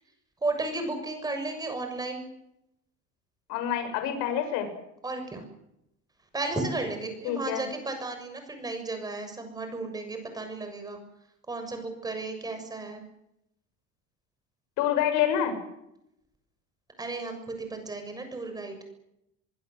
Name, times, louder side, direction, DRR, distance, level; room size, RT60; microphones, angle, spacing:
voice 1, 0.4-2.3 5.0-5.5 6.3-11.0 11.5-13.0 17.0-18.8, right 2 dB, 15° right, 6 dB, 6.9 m, -34 dB
voice 2, 3.5-4.7 7.2-7.7 14.8-15.6, left 9 dB, 80° left, 7 dB, 7.0 m, -27 dB
24.0 x 23.5 x 7.8 m, 0.82 s
cardioid pair, 165°, 30 cm